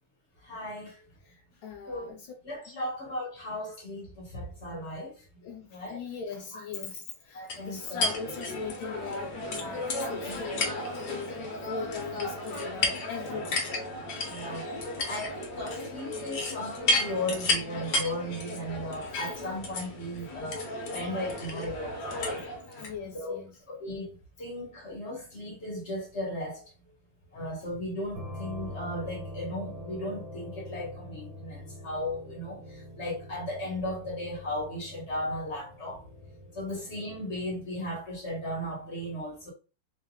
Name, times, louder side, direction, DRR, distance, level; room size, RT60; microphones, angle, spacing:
voice 1, 0.4-1.0 1.9-2.1 2.4-5.2 5.7-6.0 6.5-6.6 7.3-8.1 9.8-9.9 10.2-10.4 14.3-14.7 15.1-22.4 22.7-22.8 23.1-23.4 23.7-26.7 27.3-36.0 36.5-39.5, left 1 dB, 35° left, 1.4 m, -36 dB
voice 2, 1.6-2.3 2.7-2.8 5.4-13.7 19.4-19.6 22.8-23.5, left 5 dB, 75° left, 1.5 m, -39 dB
sound 1, 7.5-22.9, left 2 dB, 60° left, 1.5 m, -33 dB
sound 2, 28.1-37.7, left 1 dB, 70° right, 2.1 m, -44 dB
4.1 x 2.8 x 3.5 m
omnidirectional pair, 2.2 m